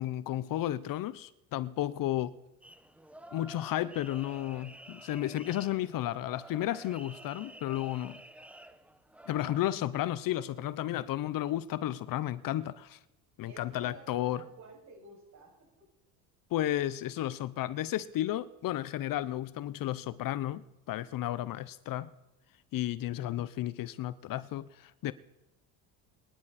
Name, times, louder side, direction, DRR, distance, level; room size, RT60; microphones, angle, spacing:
voice 1, 0.0-2.3 3.3-8.2 9.3-13.0 13.4-14.4 16.5-22.1 22.7-25.1, left 13 dB, 60° left, 0.8 m, -33 dB
sound 1, 2.6-9.6, right 1 dB, 5° right, 1.0 m, -51 dB
voice 2, 13.5-15.9, right 2 dB, 45° right, 6.7 m, -53 dB
24.0 x 11.0 x 4.3 m
supercardioid pair, 100°, 39 cm